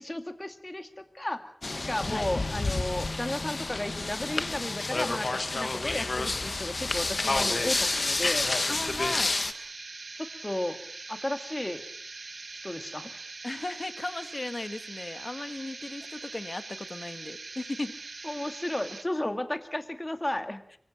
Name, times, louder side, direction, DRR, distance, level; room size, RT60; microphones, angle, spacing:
voice 1, 0.0-1.5 1.8-8.5 10.1-10.8 11.1-11.8 12.6-13.1 18.2-20.6, left 1 dB, 25° left, 7 dB, 2.2 m, -34 dB
sound 1, 1.6-9.5, left 3 dB, 65° left, 1.4 m, -29 dB
sound 2, 7.6-19.0, right 3 dB, 85° right, 1.3 m, -43 dB
voice 2, 8.7-9.4 13.4-18.0, left 2 dB, 45° left, 9 dB, 1.7 m, -36 dB
25.0 x 24.0 x 6.1 m, 0.62 s
wide cardioid pair, 60°, 0 cm